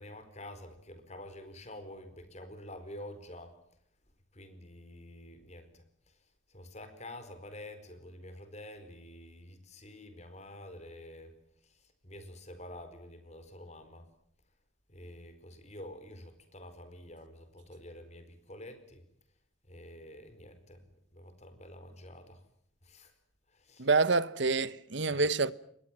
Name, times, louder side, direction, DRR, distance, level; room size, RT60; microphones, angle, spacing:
voice 1, 0.0-3.5 4.3-6.1 6.5-11.3 11.6-14.0 14.9-19.0 19.7-20.8 21.1-22.4 22.8-23.1 23.5-23.9 25.1-25.3, left 1 dB, 35° left, 4.5 m, -48 dB
voice 2, 23.8-25.5, right 3 dB, 65° right, 1.1 m, -27 dB
29.5 x 22.0 x 7.6 m
head